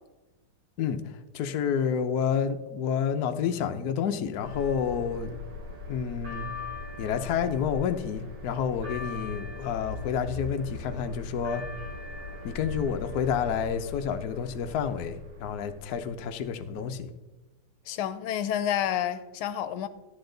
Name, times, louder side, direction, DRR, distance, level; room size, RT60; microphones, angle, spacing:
voice 1, 1.3-5.4 5.9-6.5 7.0-11.6 12.4-17.1, left 7 dB, 60° left, 1.0 m, -29 dB
sound 1, 4.4-16.8, left 3 dB, 70° right, 2.7 m, -39 dB
voice 2, 17.9-19.9, left 10 dB, 85° left, 1.4 m, -29 dB
13.5 x 8.8 x 3.9 m
omnidirectional pair, 2.3 m